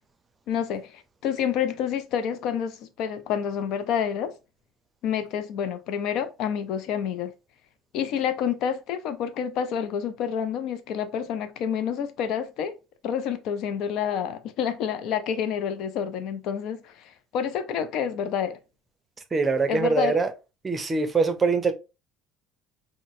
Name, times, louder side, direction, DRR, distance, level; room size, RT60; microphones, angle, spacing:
voice 1, 0.5-0.9 1.2-4.3 5.0-7.3 7.9-12.8 13.0-17.0 17.3-18.6 19.7-20.2, left 8 dB, 55° left, 0.4 m, -28 dB
voice 2, 19.3-20.3 20.6-21.7, right 4 dB, 25° right, 0.6 m, -23 dB
3.8 x 2.0 x 2.6 m
figure-of-eight pair, 55°, 0 cm